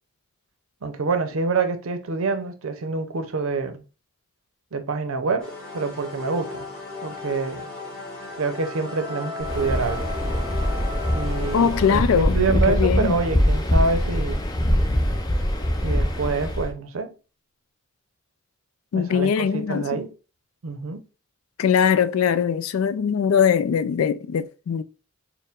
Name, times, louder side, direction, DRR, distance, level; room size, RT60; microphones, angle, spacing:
voice 1, 0.8-3.8 4.7-6.7 7.0-7.7 8.4-10.1 11.1-14.4 15.8-17.1 18.9-20.1 20.6-21.0, right 4 dB, 80° right, 0.6 m, -26 dB
sound 1, 5.4-12.0, left 3 dB, 5° left, 1.0 m, -35 dB
Waves surf, 9.4-16.7, equal, 20° left, 0.4 m, -23 dB
voice 2, 11.5-13.2 18.9-20.0 21.6-24.8, left 7 dB, 80° left, 0.3 m, -21 dB
4.4 x 2.1 x 3.5 m
head